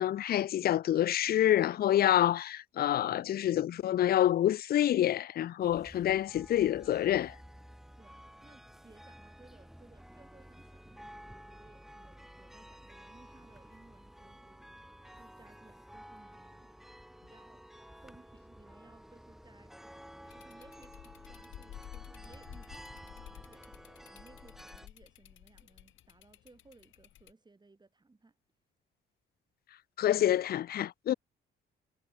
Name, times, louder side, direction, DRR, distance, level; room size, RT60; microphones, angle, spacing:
voice 1, 0.0-7.3 30.0-31.1, left 12 dB, 50° left, 0.4 m, -27 dB
sound 1, 5.6-24.9, equal, ahead, 1.8 m, -52 dB
voice 2, 8.0-14.7 15.1-16.7 17.3-17.7 18.0-19.7 20.3-28.4, right 3 dB, 20° right, 5.4 m, -61 dB
sound 2, 20.2-27.3, left 12 dB, 80° left, 6.0 m, -53 dB
cardioid pair, 90°, 20 cm